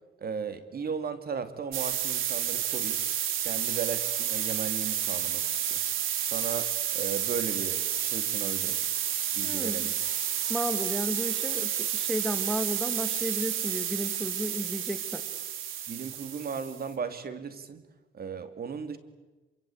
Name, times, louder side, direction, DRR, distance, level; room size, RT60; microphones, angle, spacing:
voice 1, 0.2-3.0 3.4-5.8 6.2-8.8 9.3-9.9 15.9-17.8 18.1-19.0, right 6 dB, 50° right, 10 dB, 2.5 m, -36 dB
sound 1, 1.7-16.9, right 10 dB, 85° right, 3.2 m, -30 dB
voice 2, 9.4-9.9 10.5-15.3, equal, ahead, 8 dB, 2.5 m, -33 dB
27.0 x 25.0 x 8.6 m, 1.2 s
cardioid pair, 90°, 20 cm